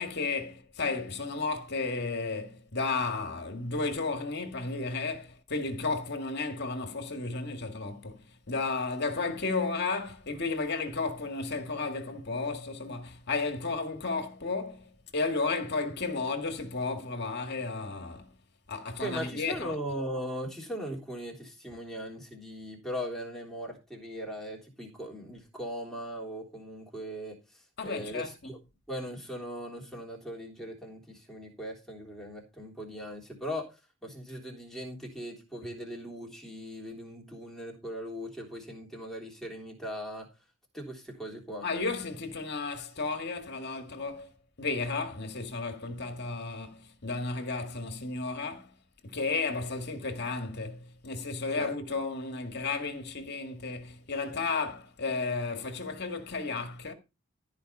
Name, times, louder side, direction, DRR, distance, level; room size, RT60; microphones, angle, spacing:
voice 1, 0.0-18.3 18.7-19.8 27.8-28.3 41.6-44.3 44.6-48.7 49.0-56.9, left 3 dB, 50° left, 1.9 m, -33 dB
voice 2, 19.0-28.6 28.9-40.3 40.7-41.6 51.5-51.8, equal, ahead, 3.4 m, -39 dB
13.5 x 5.2 x 5.4 m
head